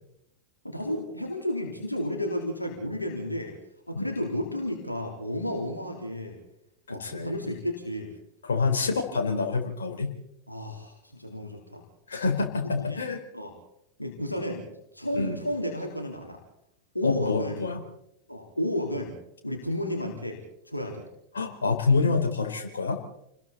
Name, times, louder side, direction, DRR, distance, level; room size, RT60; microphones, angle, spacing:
voice 1, 0.6-3.5 3.9-6.4 6.9-8.1 10.5-11.8 12.8-13.0 13.3-13.5 14.0-14.7 14.9-16.4 16.9-17.6 18.3-19.1 19.4-20.4 20.6-21.1, left 1 dB, 85° left, 0 dB, 3.9 m, -32 dB
voice 2, 6.9-7.3 8.4-10.1 12.1-13.2 15.1-15.4 17.0-17.8 21.3-23.0, left 4 dB, 70° left, 3 dB, 4.4 m, -27 dB
29.5 x 21.0 x 4.3 m, 0.80 s
figure-of-eight pair, 90°, 0 cm